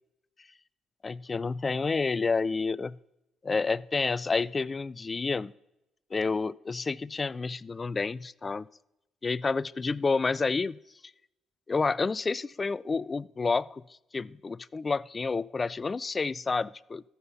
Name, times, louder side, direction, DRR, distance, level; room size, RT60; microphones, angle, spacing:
voice 1, 1.0-3.0 3.4-5.5 6.1-8.7 9.2-10.8 11.7-13.8 14.1-17.0, left 4 dB, 30° left, 21 dB, 0.3 m, -29 dB
13.5 x 5.6 x 6.7 m, 0.88 s
cardioid pair, 85°, 0 cm